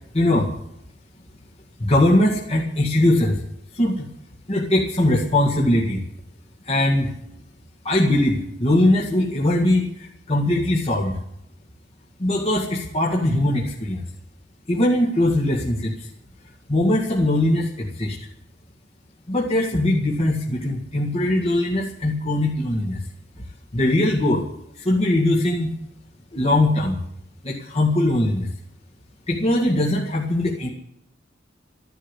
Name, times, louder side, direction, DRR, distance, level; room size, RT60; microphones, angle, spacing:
voice 1, 0.1-0.5 1.8-3.4 3.7-4.1 4.5-6.0 6.7-7.1 7.8-11.2 12.2-14.0 14.7-15.9 16.7-18.2 19.3-23.0 23.7-24.5 24.8-25.7 26.3-27.0 27.4-28.5 29.3-30.7, left 1 dB, 35° left, -2 dB, 2.0 m, -21 dB
13.5 x 11.5 x 8.3 m, 0.79 s
head